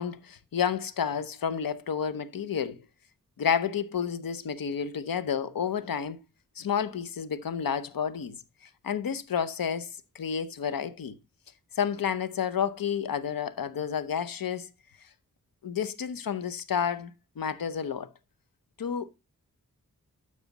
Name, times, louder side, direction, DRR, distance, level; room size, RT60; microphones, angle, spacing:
voice 1, 0.0-2.9 3.4-6.2 6.6-11.2 11.7-14.7 15.6-18.1 18.8-19.1, left 7 dB, 90° left, 0.9 m, -30 dB
12.5 x 4.9 x 4.0 m
cardioid pair, 55°, 33 cm